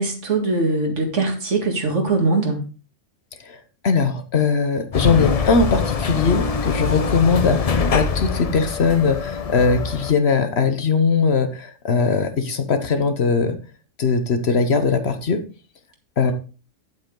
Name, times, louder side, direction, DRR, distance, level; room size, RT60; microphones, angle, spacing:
voice 1, 0.0-2.6, right 3 dB, 70° right, 3 dB, 2.3 m, -21 dB
voice 2, 3.8-13.6 14.0-15.4 16.2-16.3, left 4 dB, 60° left, 8 dB, 1.3 m, -20 dB
sound 1, 4.9-10.1, left 5 dB, 40° left, 0.5 m, -23 dB
9.1 x 7.8 x 3.8 m, 0.35 s
omnidirectional pair, 1.3 m